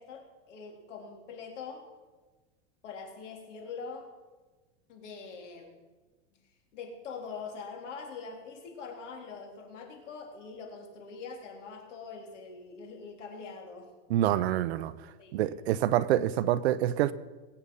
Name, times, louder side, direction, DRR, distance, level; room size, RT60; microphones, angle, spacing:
voice 1, 0.0-1.9 2.8-4.1 4.9-5.8 6.7-13.9 15.0-15.4, left 5 dB, 70° left, 3.6 m, -43 dB
voice 2, 14.1-14.9 15.3-17.1, right 12 dB, 60° right, 0.7 m, -26 dB
21.0 x 8.8 x 5.5 m
supercardioid pair, 175°, 37 cm